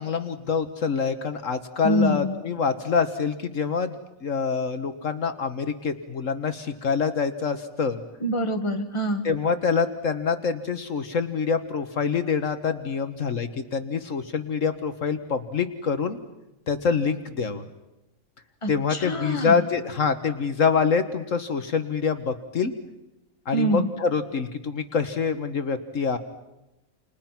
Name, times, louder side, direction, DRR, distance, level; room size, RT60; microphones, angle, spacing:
voice 1, 0.0-4.0 4.2-8.0 9.2-16.2 16.7-17.6 18.7-22.7 23.5-26.2, left 5 dB, 65° left, 8 dB, 1.6 m, -26 dB
voice 2, 1.8-2.3 8.2-9.3 18.6-19.6 23.5-23.9, right 1 dB, 20° left, 5 dB, 1.9 m, -25 dB
29.5 x 28.5 x 5.9 m, 0.97 s
omnidirectional pair, 1.5 m